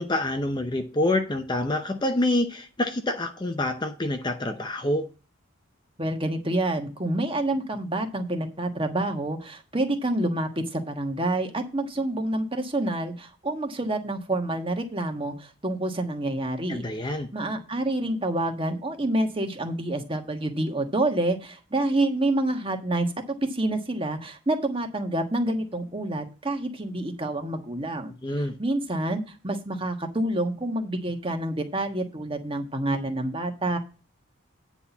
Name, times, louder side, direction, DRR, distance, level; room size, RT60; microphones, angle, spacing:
voice 1, 0.0-5.1 16.7-17.3 28.2-28.5, left 1 dB, 20° left, 0.7 m, -27 dB
voice 2, 6.0-33.8, right 1 dB, 25° right, 1.4 m, -28 dB
9.7 x 4.2 x 7.0 m
head